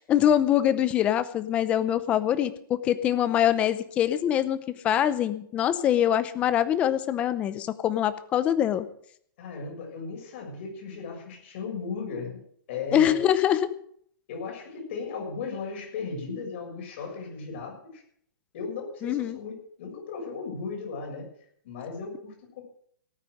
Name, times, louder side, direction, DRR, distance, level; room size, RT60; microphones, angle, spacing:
voice 1, 0.0-8.9 12.9-13.7 19.0-19.4, left 10 dB, 10° left, 13 dB, 0.7 m, -24 dB
voice 2, 9.4-12.4 12.7-13.2 14.3-18.0 18.5-21.3 21.6-22.6, left 4 dB, 35° left, 0 dB, 6.9 m, -36 dB
18.5 x 9.0 x 6.5 m, 0.63 s
hypercardioid pair, 180°, 11 cm